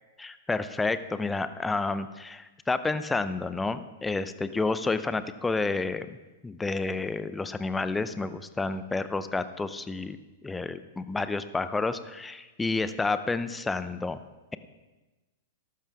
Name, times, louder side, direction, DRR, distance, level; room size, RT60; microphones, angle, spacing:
voice 1, 0.2-6.2 6.4-14.2, left 3 dB, 10° left, 12 dB, 0.6 m, -30 dB
14.0 x 12.0 x 3.6 m, 1.1 s
hypercardioid pair, 105°, 0 cm